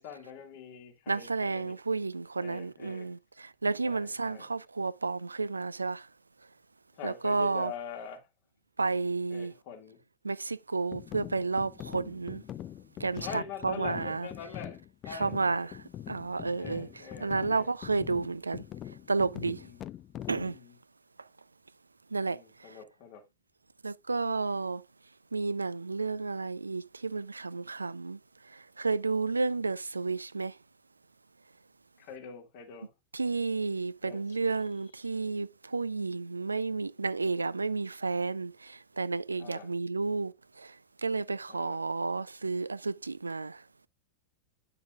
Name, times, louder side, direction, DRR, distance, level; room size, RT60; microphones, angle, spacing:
voice 1, 0.0-1.8 2.4-3.1 3.8-4.5 6.9-8.3 9.3-10.0 13.1-14.8 15.1-15.7 16.6-17.7 19.6-19.8 20.5-20.8 22.3-23.2 32.0-32.9 34.0-34.6 35.0-35.1 39.4-39.7 41.5-41.8, left 7 dB, 50° left, 1.8 m, -44 dB
voice 2, 1.1-6.1 7.0-7.7 8.8-9.5 10.2-12.4 13.0-14.3 15.1-15.8 16.1-16.9 17.2-18.6 19.1-19.7 20.3-20.6 22.1-22.8 23.8-24.8 25.3-28.2 28.5-30.6 33.1-40.8 41.0-43.6, right 3 dB, 80° right, 0.3 m, -31 dB
sound 1, 10.9-20.6, left 12 dB, 30° left, 0.5 m, -44 dB
9.3 x 6.6 x 2.3 m
figure-of-eight pair, 90°, 0 cm